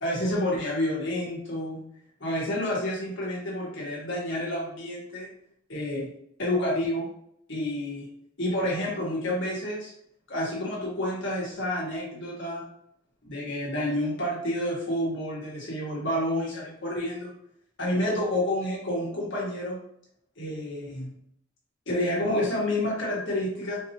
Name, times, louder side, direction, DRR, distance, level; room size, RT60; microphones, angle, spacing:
voice 1, 0.0-1.8 2.2-5.3 5.7-6.1 6.4-7.1 7.5-8.1 8.4-9.9 10.3-12.6 13.2-17.3 17.8-19.8 20.4-21.1 21.9-23.8, left 1 dB, 80° left, -5 dB, 1.6 m, -29 dB
4.5 x 2.8 x 3.0 m, 0.71 s
head